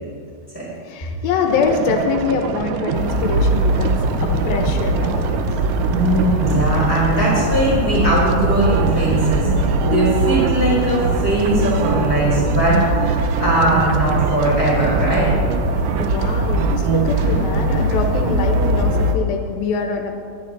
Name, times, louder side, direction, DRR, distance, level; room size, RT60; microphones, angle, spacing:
voice 1, 0.8-5.4 15.9-20.3, left 5 dB, 85° left, 4 dB, 2.8 m, -24 dB
sound 1, 1.5-19.1, right 9 dB, 80° right, 2.1 m, -26 dB
sound 2, 2.9-19.1, equal, 45° right, 1.1 m, -21 dB
voice 2, 5.9-15.3, right 1 dB, 15° left, -7 dB, 4.5 m, -20 dB
23.5 x 10.5 x 4.1 m, 2.5 s
omnidirectional pair, 4.1 m